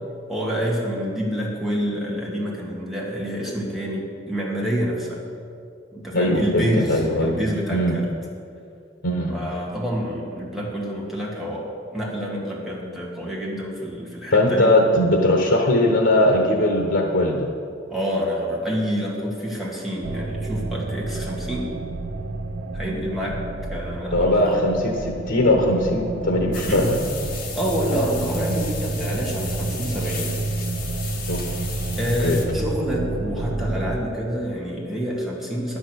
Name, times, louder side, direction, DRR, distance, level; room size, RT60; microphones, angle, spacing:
voice 1, 0.3-5.2 5.9-8.1 9.3-11.7 11.9-14.7 17.9-21.7 22.7-23.4 23.7-24.7 26.5-26.9 27.5-30.4 32.0-35.8, equal, ahead, -5 dB, 1.8 m, -27 dB
voice 2, 6.1-7.4 7.7-8.0 9.0-9.4 14.3-17.5 24.1-27.0 31.3-31.4 32.2-32.4, left 1 dB, 85° left, 2 dB, 1.0 m, -20 dB
sound 1, 20.0-34.0, right 2 dB, 65° right, 0.6 m, -29 dB
sound 2, 26.5-32.5, left 5 dB, 50° left, 1.5 m, -35 dB
10.0 x 6.3 x 7.9 m, 2.4 s
head